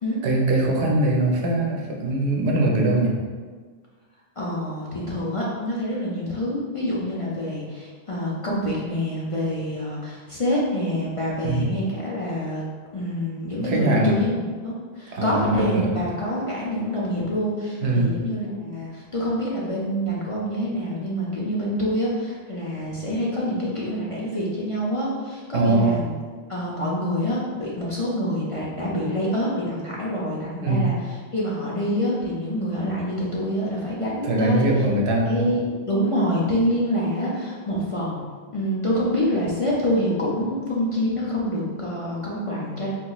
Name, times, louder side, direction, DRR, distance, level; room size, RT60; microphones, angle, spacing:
voice 1, 0.2-3.1 11.4-11.7 13.6-14.1 15.1-16.0 17.8-18.1 25.5-25.9 30.6-30.8 34.2-35.5, right 2 dB, 80° right, -1 dB, 0.9 m, -21 dB
voice 2, 4.4-12.6 12.9-26.1 26.5-30.9 31.3-34.7 35.2-38.2 38.5-42.9, equal, 40° left, -6 dB, 0.5 m, -26 dB
3.8 x 2.9 x 2.3 m, 1.6 s
omnidirectional pair, 1.1 m